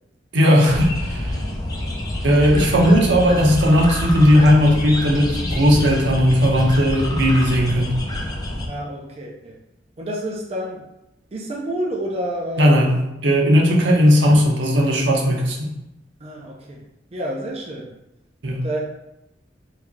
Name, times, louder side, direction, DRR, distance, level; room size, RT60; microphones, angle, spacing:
voice 1, 0.3-1.3 2.2-8.0 12.6-15.7 18.4-18.6, equal, 80° right, 0 dB, 0.7 m, -16 dB
sound 1, 0.7-8.7, left 1 dB, 20° left, 0.5 m, -27 dB
voice 2, 8.7-9.6 10.0-10.8 11.3-12.8 16.2-16.8 17.1-17.9 18.6-18.8, right 1 dB, 35° right, -2 dB, 0.4 m, -29 dB
3.2 x 2.6 x 3.6 m, 0.91 s
head